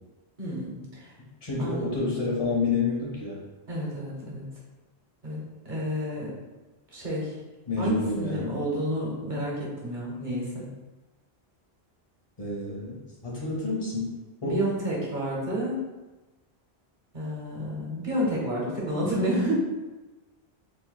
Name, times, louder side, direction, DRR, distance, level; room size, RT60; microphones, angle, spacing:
voice 1, 0.4-1.1 1.6-1.8 3.7-4.4 5.2-6.3 6.9-7.3 7.8-10.7 14.4-15.8 17.1-19.5, equal, 50° right, -4 dB, 1.1 m, -30 dB
voice 2, 1.4-3.4 7.7-8.5 12.4-13.0 13.2-14.1 14.4-14.6, left 3 dB, 35° left, -5 dB, 0.6 m, -28 dB
2.7 x 2.6 x 3.9 m, 1.1 s
omnidirectional pair, 1.1 m